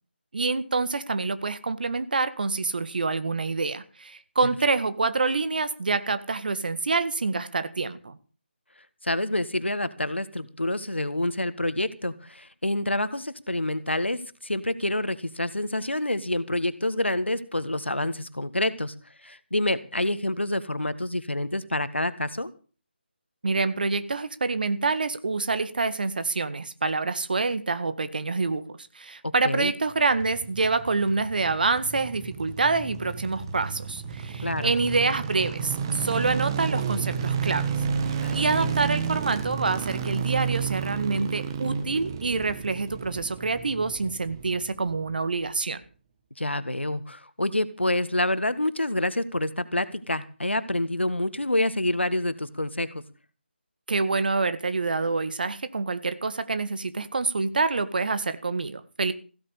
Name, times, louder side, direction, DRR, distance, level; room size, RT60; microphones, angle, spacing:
voice 1, 0.3-8.2 23.4-37.7 38.3-45.8 53.9-59.1, right 3 dB, 50° right, 12 dB, 1.8 m, -26 dB
voice 2, 9.0-18.9 19.2-22.5 29.2-29.7 34.4-34.7 38.2-38.7 46.4-53.0, left 1 dB, 90° left, 14 dB, 1.8 m, -27 dB
sound 1, 29.9-45.1 45.4-45.5, right 6 dB, 25° right, 1.4 m, -32 dB
16.0 x 8.5 x 8.2 m, 0.38 s
figure-of-eight pair, 155°, 6 cm